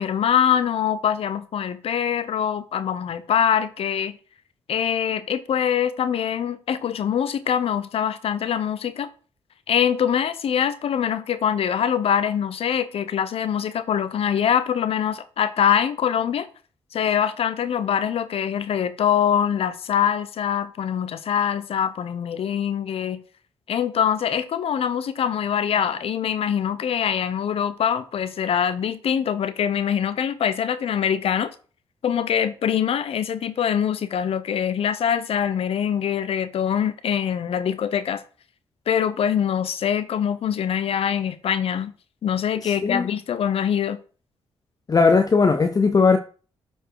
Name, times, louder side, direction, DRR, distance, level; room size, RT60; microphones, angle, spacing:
voice 1, 0.0-4.2 4.7-9.1 9.7-16.5 16.9-23.2 23.7-31.5 32.0-38.2 38.9-41.9 42.2-44.0, left 8 dB, 65° left, 0.8 m, -23 dB
voice 2, 42.6-43.1 44.9-46.2, left 4 dB, 35° left, 0.7 m, -18 dB
7.8 x 4.5 x 4.7 m
supercardioid pair, 55°, 11 cm